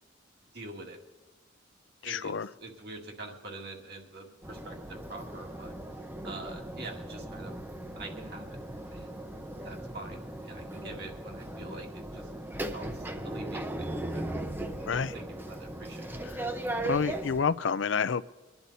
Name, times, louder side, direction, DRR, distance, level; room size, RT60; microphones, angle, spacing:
voice 1, 0.5-1.0 2.0-5.7 6.2-7.5 8.0-8.6 8.9-9.3 9.6-12.3 12.7-14.2 14.9-16.2, right 2 dB, 55° right, 1 dB, 2.1 m, -45 dB
voice 2, 2.0-2.5 14.9-15.1 16.3-16.4 16.8-18.3, left 6 dB, 80° left, 16 dB, 0.5 m, -29 dB
sound 1, 4.4-17.4, right 1 dB, 10° right, 0.7 m, -38 dB
23.5 x 10.5 x 4.1 m, 1.2 s
head